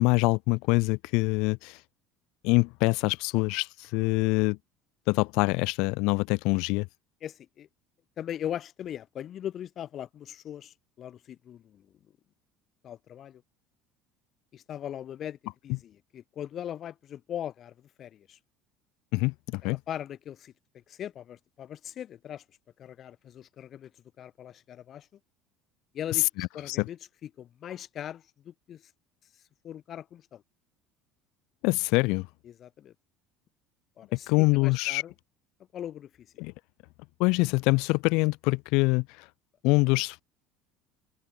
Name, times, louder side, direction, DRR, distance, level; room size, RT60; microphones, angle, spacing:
voice 1, 0.0-1.8 2.4-4.6 5.1-6.9 19.1-19.8 26.4-26.9 31.6-32.3 34.1-35.0 36.4-36.5 37.2-39.3 39.6-40.2, left 27 dB, 75° left, 0.9 m, -25 dB
voice 2, 7.2-7.7 8.2-11.8 12.8-13.4 14.5-15.4 15.6-18.4 19.6-22.4 22.8-25.1 25.9-28.9 29.3-30.4 32.4-32.9 34.0-35.1 35.7-36.3, left 10 dB, 45° left, 4.4 m, -40 dB
open air
supercardioid pair, 115°, 0 cm